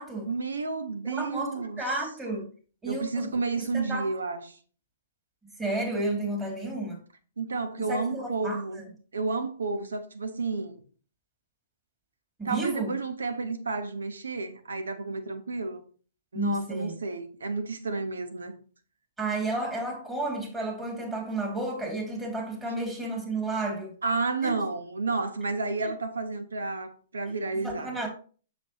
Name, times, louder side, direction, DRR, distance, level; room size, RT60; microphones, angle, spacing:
voice 1, 0.3-1.8 2.8-4.6 7.4-8.8 9.1-10.8 12.4-15.8 16.3-18.6 24.0-27.9, right 3 dB, 80° right, 1.1 m, -31 dB
voice 2, 1.0-2.5 2.8-4.1 5.6-7.0 7.8-8.9 12.4-12.9 16.3-16.9 19.2-23.9 24.4-24.6 27.6-28.1, right 2 dB, 10° right, 2.8 m, -32 dB
7.1 x 6.3 x 3.1 m
hypercardioid pair, 120°, 0 cm